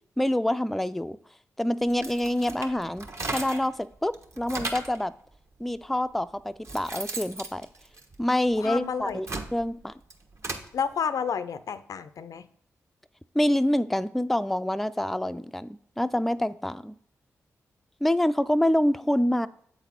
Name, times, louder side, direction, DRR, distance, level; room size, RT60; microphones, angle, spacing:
voice 1, 0.2-1.2 1.6-3.1 3.3-5.1 5.6-7.7 8.2-9.3 9.5-9.9 13.3-16.9 18.0-19.5, left 1 dB, 5° left, 11 dB, 0.3 m, -26 dB
sound 1, 1.9-3.8 4.1-5.0 5.8-5.9 6.4-8.5 9.0-10.7, right 2 dB, 50° right, 1.0 m, -36 dB
voice 2, 8.6-9.2 10.7-12.5, left 6 dB, 70° left, 13 dB, 0.4 m, -30 dB
7.5 x 4.0 x 4.3 m, 0.64 s
supercardioid pair, 45°, 6 cm